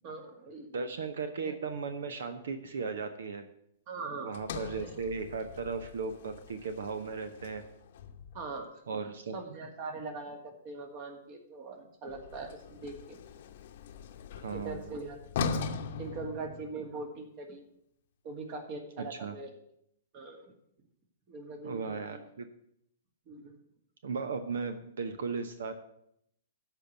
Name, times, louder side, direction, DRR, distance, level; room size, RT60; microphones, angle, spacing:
voice 1, 0.0-0.7 1.4-1.6 3.9-4.3 4.8-4.9 8.3-9.0 9.3-13.2 14.5-17.6 18.2-19.5 20.1-20.5 21.3-22.2 23.3-23.6, right 3 dB, 40° right, 4 dB, 2.3 m, -42 dB
voice 2, 0.7-3.5 4.2-7.6 8.9-9.3 14.4-14.9 19.0-19.4 21.6-22.5 24.0-25.7, right 5 dB, 65° right, 9 dB, 0.9 m, -36 dB
Sliding door, 4.3-8.6 12.1-17.0, left 5 dB, 55° left, 0.9 m, -40 dB
13.0 x 4.6 x 8.2 m, 0.74 s
figure-of-eight pair, 115°, 0 cm